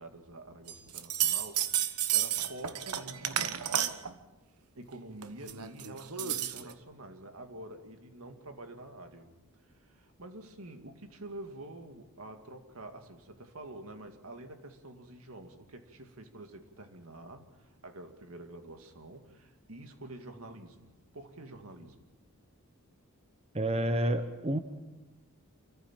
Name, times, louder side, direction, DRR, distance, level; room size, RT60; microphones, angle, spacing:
voice 1, 0.0-3.9 4.8-9.3 9.6-22.0, right 1 dB, 70° right, 6 dB, 2.2 m, -48 dB
sound 1, 0.7-4.1 5.2-6.7, right 11 dB, 85° right, 1.2 m, -31 dB
voice 2, 23.5-24.6, right 1 dB, 25° right, 8 dB, 0.9 m, -29 dB
27.5 x 14.5 x 7.3 m, 1.1 s
head